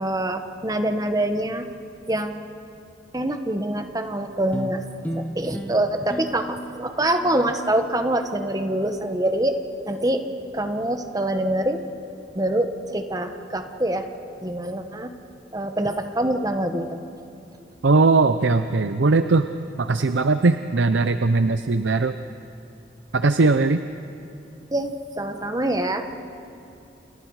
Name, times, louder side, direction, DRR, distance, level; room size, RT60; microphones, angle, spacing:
voice 1, 0.0-1.7 2.1-2.4 3.1-4.8 5.1-9.5 9.9-10.2 10.5-11.8 12.3-14.1 14.4-15.1 15.5-17.0 24.7-26.0, right 1 dB, 20° right, 6 dB, 1.3 m, -25 dB
sound 1, 4.5-9.2, equal, 10° left, 1.3 m, -37 dB
voice 2, 17.8-19.5 19.8-22.2 23.1-23.8, right 3 dB, 85° right, 10 dB, 0.6 m, -19 dB
29.5 x 28.5 x 4.9 m, 2.6 s
head